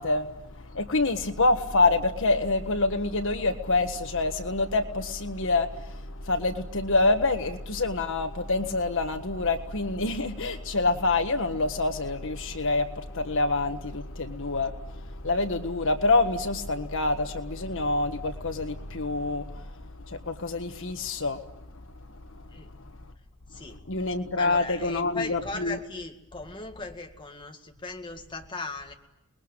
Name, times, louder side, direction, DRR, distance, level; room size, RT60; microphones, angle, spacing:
voice 1, 0.0-21.6 22.3-22.9 23.5-25.8, left 3 dB, 65° left, 1.6 m, -27 dB
voice 2, 23.5-23.8 24.4-28.9, left 3 dB, 20° left, 2.1 m, -38 dB
29.5 x 21.0 x 9.0 m
head